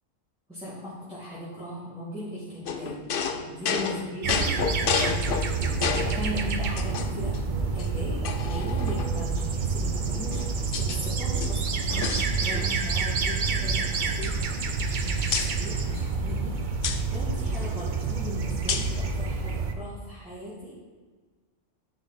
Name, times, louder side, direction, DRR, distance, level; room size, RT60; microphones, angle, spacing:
voice 1, 0.5-3.0 3.5-14.4 14.8-16.7 17.1-20.7, equal, 5° right, -11 dB, 2.2 m, -38 dB
sound 1, 2.7-6.2 6.8-7.4 7.8-7.9 8.2-9.3 10.1-11.0 11.3-12.9 13.1-13.3 13.6-14.9 15.3-15.5 16.8-17.0 18.7-19.0, left 6 dB, 55° left, 0.7 m, -31 dB
sound 2, 4.2-19.7, right 4 dB, 45° right, 0.7 m, -28 dB
10.5 x 5.7 x 4.0 m, 1.4 s
omnidirectional pair, 1.3 m